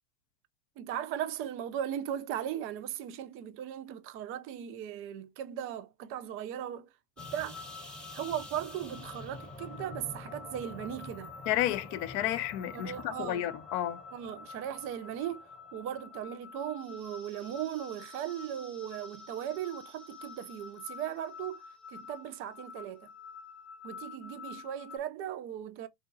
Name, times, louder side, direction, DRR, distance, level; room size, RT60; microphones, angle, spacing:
voice 1, 0.8-6.9 7.3-7.6 8.1-11.3 12.7-13.5 14.1-21.6 21.9-23.1 23.8-25.9, right 10 dB, 30° right, 0.4 m, -38 dB
sound 1, 7.2-25.0, left 4 dB, ahead, 0.9 m, -47 dB
voice 2, 11.5-14.0, left 13 dB, 45° left, 0.5 m, -31 dB
3.9 x 2.2 x 2.6 m
hypercardioid pair, 85°, 47 cm